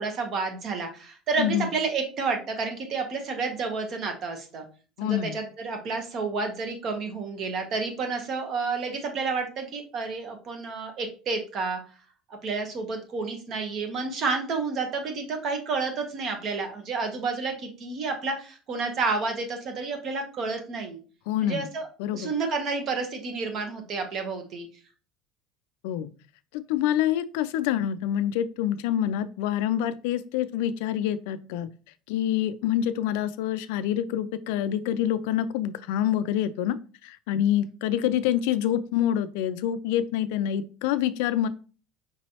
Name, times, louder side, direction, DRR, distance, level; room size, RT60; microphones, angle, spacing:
voice 1, 0.0-4.6 5.0-11.8 12.4-21.0 21.4-21.9 22.1-24.7, right 4 dB, 35° right, 5 dB, 1.0 m, -30 dB
voice 2, 1.4-1.7 5.0-5.4 21.3-21.7 22.0-22.3 25.8-26.1 26.5-31.7 32.1-36.8 37.0-41.5, left 11 dB, 85° left, 13 dB, 0.4 m, -26 dB
5.2 x 3.1 x 2.8 m, 0.37 s
cardioid pair, 165°, 0 cm